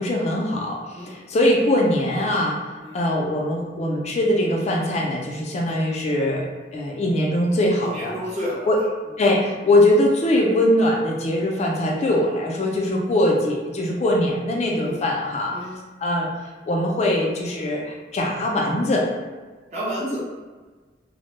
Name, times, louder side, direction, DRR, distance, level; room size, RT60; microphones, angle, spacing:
voice 1, 0.0-1.0 1.3-2.6 2.9-6.5 6.7-8.1 8.7-8.8 9.2-15.6 16.0-16.3 16.7-19.1, left 1 dB, 40° left, -1 dB, 0.3 m, -21 dB
voice 2, 7.8-8.9 14.8-15.0 15.5-15.8 19.7-20.2, equal, 40° right, -7 dB, 0.8 m, -31 dB
2.1 x 2.1 x 3.0 m, 1.3 s
head